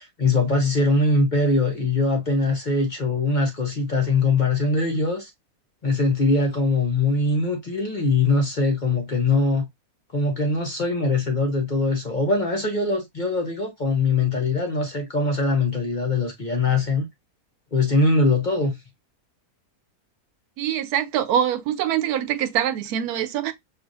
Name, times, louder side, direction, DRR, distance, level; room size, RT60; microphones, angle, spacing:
voice 1, 0.0-5.3 5.8-9.7 10.1-17.1 17.7-18.8, left 3 dB, 40° left, 0.8 m, -22 dB
voice 2, 20.6-23.5, right 10 dB, 85° right, 1.1 m, -24 dB
6.2 x 2.6 x 2.6 m
omnidirectional pair, 1.6 m